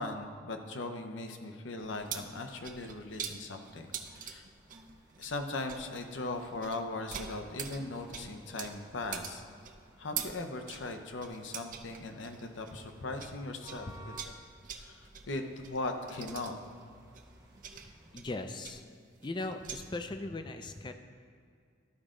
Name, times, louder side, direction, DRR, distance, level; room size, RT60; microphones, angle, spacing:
voice 1, 0.0-4.5 5.2-9.4 10.0-14.2 14.7-16.5, left 2 dB, 80° left, 6 dB, 0.7 m, -39 dB
sound 1, 1.8-13.4 13.6-19.8, right 8 dB, 45° right, 0.5 m, -45 dB
sound 2, 3.8-18.2, equal, 20° right, 0.9 m, -58 dB
voice 2, 17.8-18.8 19.2-20.9, left 2 dB, 25° left, 7 dB, 0.4 m, -39 dB
13.0 x 5.0 x 3.7 m, 2.3 s
head